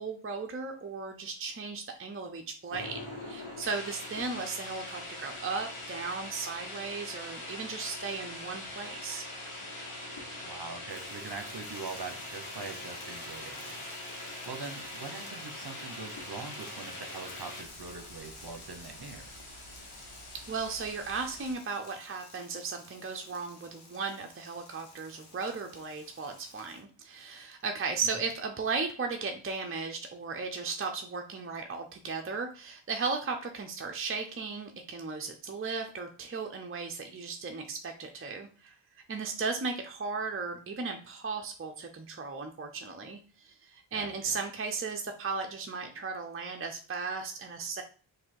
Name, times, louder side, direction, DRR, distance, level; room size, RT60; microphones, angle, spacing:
voice 1, 0.0-9.3 20.5-38.7 39.1-47.8, right 4 dB, 30° right, 4 dB, 0.5 m, -36 dB
sound 1, 2.7-21.5, left 1 dB, 85° left, 1.5 m, -43 dB
voice 2, 10.4-14.0 14.5-19.3 43.9-44.4, right 4 dB, 50° right, 5 dB, 0.9 m, -43 dB
sound 2, 10.9-26.8, left 2 dB, 55° left, 1.3 m, -53 dB
3.9 x 2.6 x 4.5 m, 0.38 s
wide cardioid pair, 80°, 48 cm